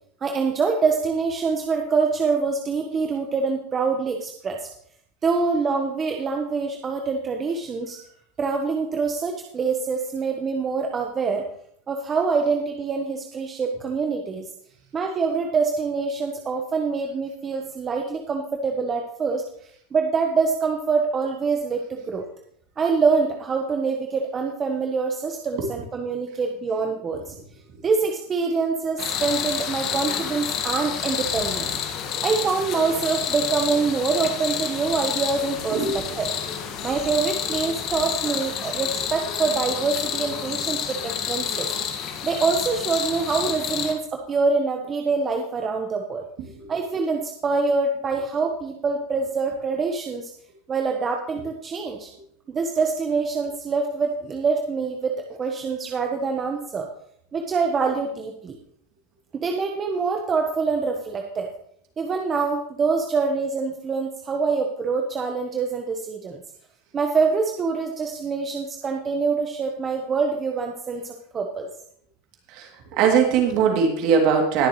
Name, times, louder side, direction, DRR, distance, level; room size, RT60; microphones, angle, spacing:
voice 1, 0.2-4.7 5.2-8.0 8.4-11.5 11.9-14.5 14.9-19.4 19.9-22.3 22.8-27.3 27.8-31.7 32.2-36.3 36.8-41.7 42.2-46.3 46.7-50.3 50.7-52.1 52.5-56.9 57.3-58.6 59.3-61.5 62.0-66.4 66.9-71.7, right 4 dB, 25° right, 2 dB, 1.1 m, -25 dB
sound 1, 29.0-43.9, left 8 dB, 45° left, 1.7 m, -29 dB
voice 2, 72.5-74.7, right 6 dB, 55° right, 2 dB, 2.7 m, -20 dB
20.0 x 6.9 x 3.2 m, 0.68 s
supercardioid pair, 130°, 0 cm